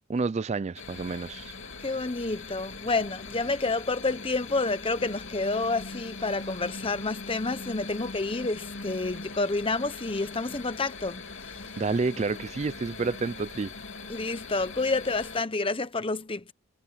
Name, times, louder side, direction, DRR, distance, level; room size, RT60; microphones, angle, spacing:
voice 1, 0.1-1.5 11.8-13.7, right 4 dB, 30° right, 0.3 m, -29 dB
sound 1, 0.8-15.4, left 4 dB, 55° left, 3.2 m, -41 dB
sound 2, 0.8-15.4, right 1 dB, 60° right, 3.6 m, -54 dB
voice 2, 1.8-11.2 14.1-16.4, left 3 dB, 25° left, 1.0 m, -29 dB
head